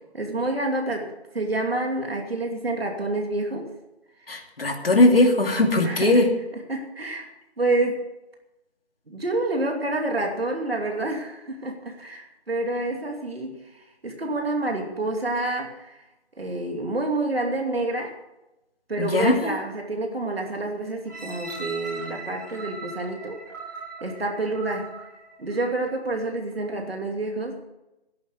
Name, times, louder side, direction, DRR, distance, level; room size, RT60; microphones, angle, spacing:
voice 1, 0.1-3.7 5.8-6.2 6.5-7.3 7.6-8.1 9.1-16.0 16.4-18.1 18.9-23.4 24.0-24.9 25.4-27.6, right 2 dB, 65° right, 2 dB, 2.7 m, -28 dB
voice 2, 4.3-6.3 19.0-19.5, left 2 dB, 60° left, 3 dB, 2.7 m, -19 dB
sound 1, 21.1-26.0 26.6-26.7, right 4 dB, 15° right, 2.4 m, -39 dB
13.5 x 11.0 x 6.6 m, 0.95 s
figure-of-eight pair, 175°, 33 cm